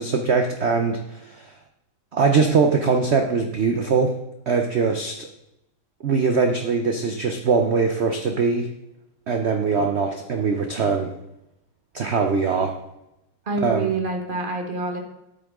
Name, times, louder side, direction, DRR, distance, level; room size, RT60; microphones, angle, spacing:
voice 1, 0.0-1.5 2.1-4.2 4.5-5.3 6.0-8.7 9.3-11.1 11.9-12.8 13.6-13.9, right 5 dB, 75° right, 5 dB, 0.6 m, -22 dB
voice 2, 13.5-15.0, right 3 dB, 30° right, 3 dB, 1.3 m, -26 dB
9.0 x 8.4 x 3.6 m, 0.90 s
omnidirectional pair, 2.1 m